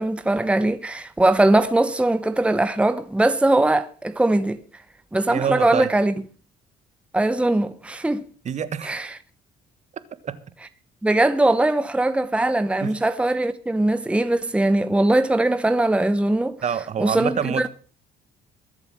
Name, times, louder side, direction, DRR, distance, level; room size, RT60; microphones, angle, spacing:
voice 1, 0.0-4.6 5.1-6.1 7.1-8.2 8.8-9.1 11.0-16.6 17.0-17.7, right 2 dB, 5° right, 1.0 m, -20 dB
voice 2, 5.3-5.9 8.4-8.9 10.2-10.4 12.8-12.9 16.6-17.7, right 8 dB, 45° right, 1.4 m, -26 dB
22.0 x 7.5 x 6.2 m
cardioid pair, 110°, 17 cm